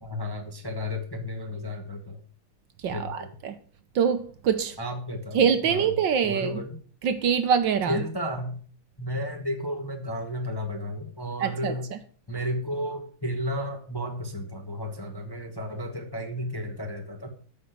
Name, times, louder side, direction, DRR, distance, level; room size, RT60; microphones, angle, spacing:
voice 1, 0.0-2.2 2.9-3.3 4.8-5.9 6.2-6.8 7.9-8.6 9.0-11.9 12.3-17.3, left 1 dB, 15° left, 0.9 m, -33 dB
voice 2, 2.8-3.5 3.9-4.8 5.3-6.5 7.0-8.0 11.4-11.7, right 7 dB, 65° right, 1.5 m, -24 dB
9.1 x 5.8 x 7.9 m
omnidirectional pair, 2.4 m